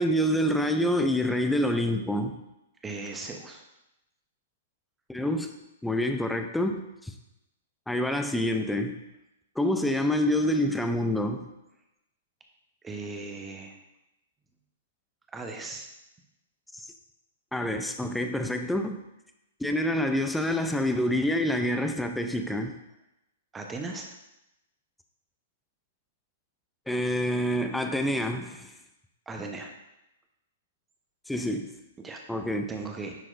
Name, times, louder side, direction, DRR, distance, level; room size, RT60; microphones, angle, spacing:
voice 1, 0.0-2.4 5.1-5.5 5.8-7.1 7.9-9.0 9.6-11.5 16.7-16.8 17.5-19.0 19.6-22.8 26.9-28.7 31.3-31.7 32.3-32.7, left 1 dB, 5° left, 6 dB, 0.5 m, -27 dB
voice 2, 2.8-3.6 12.8-13.8 15.3-15.9 23.5-24.1 29.3-29.7 32.0-32.2 32.7-33.2, right 3 dB, 15° right, 3 dB, 0.9 m, -37 dB
9.8 x 4.6 x 2.6 m, 0.89 s
hypercardioid pair, 115°, 0 cm